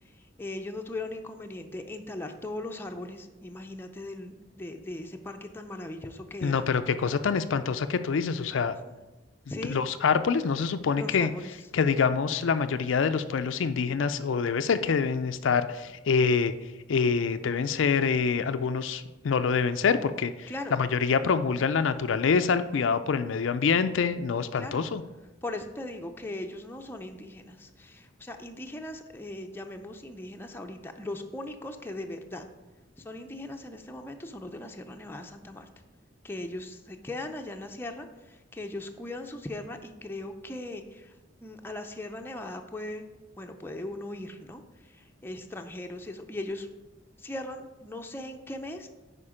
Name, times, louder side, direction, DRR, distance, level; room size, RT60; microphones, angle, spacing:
voice 1, 0.4-6.7 8.9-9.0 9.5-9.8 10.9-11.5 20.5-20.8 24.6-24.8 25.4-32.5 33.0-35.7 36.2-41.1 41.4-43.1 43.4-46.7 47.2-48.9, left 1 dB, 10° left, 4 dB, 0.6 m, -39 dB
voice 2, 6.4-8.8 9.7-11.3 11.7-16.5 16.9-25.0, left 5 dB, 75° left, 10 dB, 0.4 m, -26 dB
8.6 x 5.1 x 5.0 m, 1.1 s
head